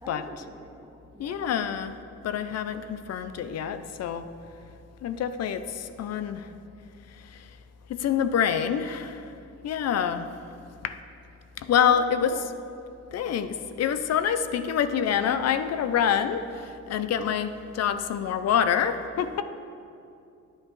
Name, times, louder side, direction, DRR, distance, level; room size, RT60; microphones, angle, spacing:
voice 1, 0.0-1.6 11.7-12.5, right 1 dB, 10° right, 2 dB, 0.7 m, -46 dB
voice 2, 1.2-2.0 2.2-4.3 5.0-6.5 7.1-7.6 7.9-9.3 9.6-10.3 10.8-11.0 11.6-12.4 13.1-19.4, left 8 dB, 55° left, 11 dB, 0.5 m, -26 dB
9.6 x 8.7 x 3.1 m, 2.5 s
cardioid pair, 90°, 30 cm